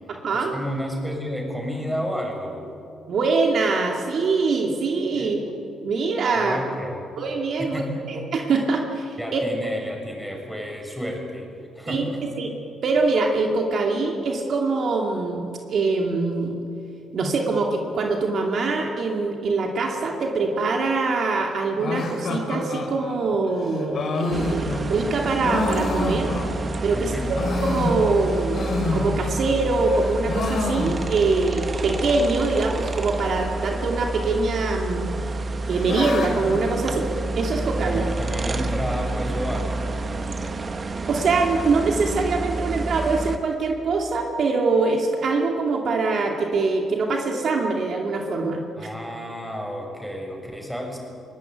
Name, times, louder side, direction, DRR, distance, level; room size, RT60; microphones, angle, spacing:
voice 1, 0.3-2.6 5.1-5.4 6.3-7.0 7.6-8.1 9.2-11.5 11.7-12.4 26.9-27.3 37.8-40.4 48.8-51.0, equal, ahead, 1 dB, 6.5 m, -31 dB
voice 2, 3.1-5.4 5.8-6.6 7.2-9.4 11.9-12.1 12.4-12.5 12.8-16.6 17.1-26.3 26.8-27.1 27.6-35.1 35.6-37.1 37.4-38.0 41.1-48.6, right 3 dB, 60° right, 1 dB, 2.6 m, -23 dB
sound 1, 21.8-26.8 27.2-29.6 29.9-31.4 31.7-31.8 32.0-32.1 32.7-33.2 34.2-34.8 35.2-37.6, left 3 dB, 55° left, 3.7 m, -29 dB
sound 2, 24.3-43.4, right 2 dB, 35° right, 1.5 m, -29 dB
22.5 x 18.0 x 9.3 m, 2.6 s
cardioid pair, 90°, 0 cm